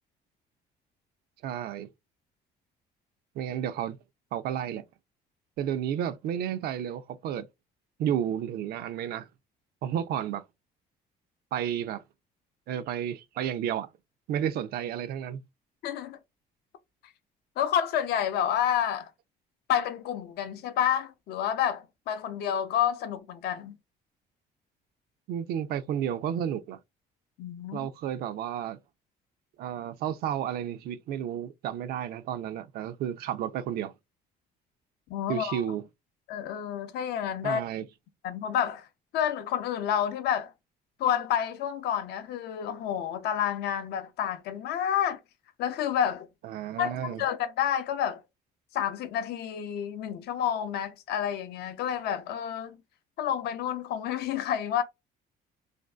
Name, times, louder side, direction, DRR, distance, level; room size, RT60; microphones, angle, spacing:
voice 1, 1.4-1.9 3.4-4.0 4.3-4.8 5.6-7.5 8.0-9.3 9.8-10.4 11.5-12.0 12.7-13.9 14.3-15.4 25.3-26.8 27.7-28.8 29.6-33.9 35.3-35.8 37.4-37.8 46.4-47.2, right 9 dB, 65° right, 0.4 m, -32 dB
voice 2, 15.8-16.2 17.6-19.1 19.7-23.7 27.4-27.9 35.1-35.6 36.3-37.6 38.2-38.9 39.1-40.5 41.0-45.2 45.6-46.3 46.8-48.2 48.7-52.8 53.2-54.8, left 9 dB, 75° left, 0.5 m, -29 dB
2.6 x 2.3 x 2.2 m
cardioid pair, 110°, 17 cm